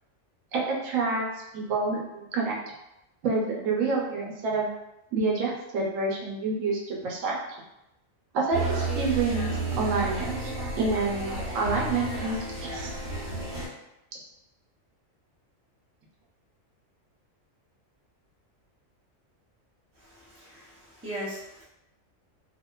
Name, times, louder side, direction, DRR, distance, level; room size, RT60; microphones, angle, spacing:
voice 1, 0.5-1.3 1.5-2.6 3.2-4.7 5.1-7.4 8.3-10.4 10.8-12.9, right 3 dB, 80° right, -2 dB, 1.0 m, -28 dB
sound 1, 8.5-13.7, right 2 dB, 40° right, 1.3 m, -32 dB
voice 2, 20.0-21.6, equal, 20° right, -7 dB, 0.4 m, -39 dB
2.7 x 2.1 x 2.2 m, 0.89 s
omnidirectional pair, 1.3 m